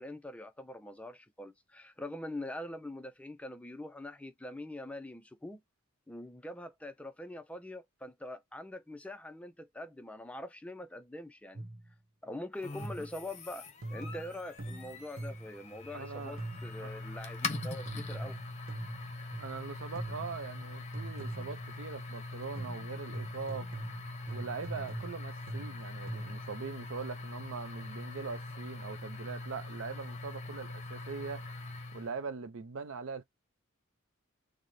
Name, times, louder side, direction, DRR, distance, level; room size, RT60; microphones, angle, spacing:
voice 1, 0.0-5.6 6.1-11.6 12.2-18.4, left 1 dB, 5° left, 0.4 m, -44 dB
sound 1, 11.5-11.9 12.8-13.3 13.8-15.6 16.4-16.8 17.5-19.6 19.9-20.4 20.9-21.7 22.5-26.5, right 1 dB, 45° right, 1.2 m, -42 dB
sound 2, 12.6-32.2, left 3 dB, 35° left, 0.8 m, -43 dB
voice 2, 15.9-16.4 16.8-16.9 19.4-23.7 24.3-31.5 31.9-33.2, right 5 dB, 65° right, 0.5 m, -41 dB
3.9 x 2.1 x 3.1 m
head